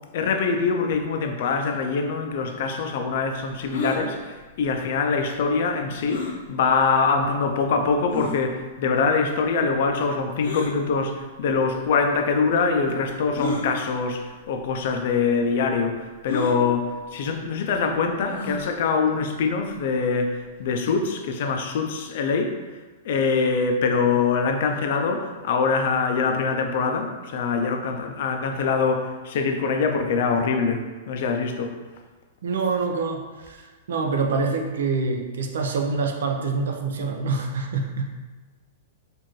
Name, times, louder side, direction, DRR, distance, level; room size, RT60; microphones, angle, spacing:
voice 1, 0.1-22.5 23.0-30.8 31.1-31.8, left 5 dB, 55° left, 4 dB, 0.4 m, -24 dB
sound 1, 3.7-4.0 6.1-6.4 7.2-7.3 8.1-8.4 10.4-10.7 11.8-11.9 13.3-13.7 14.6-14.7 15.0-15.1 16.3-16.6 18.3-18.6, left 3 dB, 80° left, 0.9 m, -29 dB
voice 2, 32.4-38.1, right 4 dB, 80° right, 3 dB, 0.5 m, -26 dB
4.5 x 2.5 x 3.0 m, 1.3 s
supercardioid pair, 165°, 0 cm